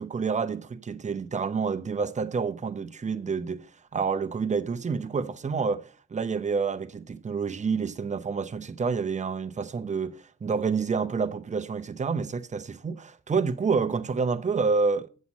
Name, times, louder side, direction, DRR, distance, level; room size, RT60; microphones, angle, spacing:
voice 1, 0.0-3.7 3.9-15.1, right 5 dB, 25° right, 0.7 m, -28 dB
7.9 x 7.3 x 4.1 m
cardioid pair, 90°, 30 cm